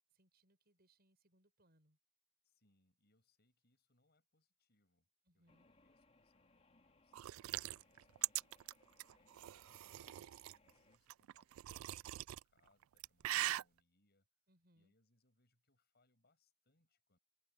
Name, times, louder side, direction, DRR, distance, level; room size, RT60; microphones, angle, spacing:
voice 1, 0.1-2.0 5.3-5.7 14.5-14.9, right 1 dB, 50° right, 7.0 m, -74 dB
voice 2, 2.4-5.1 5.3-8.8 9.1-14.3 14.7-17.2, left 2 dB, 50° left, 7.4 m, -80 dB
sound 1, 5.5-11.0, left 2 dB, 30° left, 3.1 m, -72 dB
sound 2, 7.1-10.6 11.1-12.4 12.8-13.6, right 15 dB, 80° right, 0.3 m, -41 dB
head